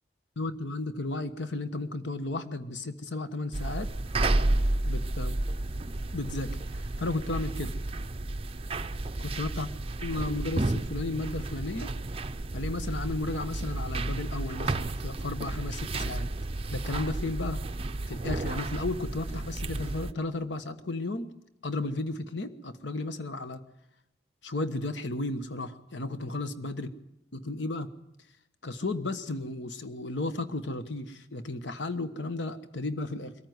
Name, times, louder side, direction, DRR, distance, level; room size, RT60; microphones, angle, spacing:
voice 1, 0.4-3.9 4.8-5.4 6.1-7.7 9.2-9.7 10.0-11.9 12.5-16.3 16.7-17.6 18.1-21.3 21.6-23.6 24.4-26.9 27.3-27.9 28.6-33.4, left 2 dB, 90° left, 11 dB, 1.2 m, -34 dB
sound 1, 3.5-20.1, right 2 dB, 30° right, 0.7 m, -32 dB
23.5 x 14.0 x 9.4 m, 0.83 s
head